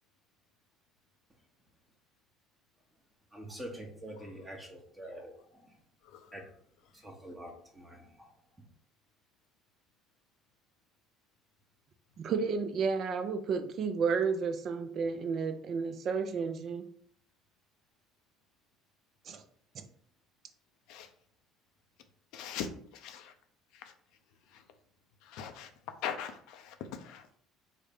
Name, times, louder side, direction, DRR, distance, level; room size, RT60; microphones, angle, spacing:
voice 1, 3.3-5.8 6.3-6.4 6.9-8.3, right 1 dB, 15° right, 0 dB, 0.8 m, -46 dB
voice 2, 12.2-16.9 19.3-19.4 19.7-19.8, right 5 dB, 55° right, 8 dB, 0.4 m, -32 dB
voice 3, 22.3-22.7 22.9-23.3 24.5-24.6 25.3-25.7 26.0-27.4, left 8 dB, 70° left, 7 dB, 0.4 m, -40 dB
3.6 x 2.1 x 3.4 m, 0.62 s
hypercardioid pair, 70°, 0 cm